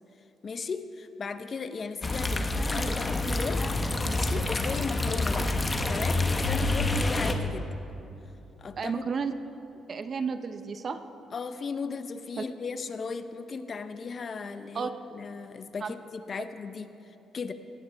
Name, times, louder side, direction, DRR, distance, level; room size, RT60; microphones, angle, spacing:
voice 1, 0.4-3.7 4.0-5.5 5.9-7.7 8.6-9.0 11.3-17.5, left 5 dB, 45° left, 10 dB, 0.8 m, -36 dB
sound 1, 2.0-7.3, left 2 dB, 25° left, 1.1 m, -27 dB
voice 2, 8.8-9.3 9.9-11.0 12.4-12.5 14.7-14.9 15.8-15.9, right 5 dB, 45° right, 9 dB, 0.7 m, -32 dB
18.0 x 15.0 x 3.5 m, 3.0 s
cardioid pair, 90°, 0 cm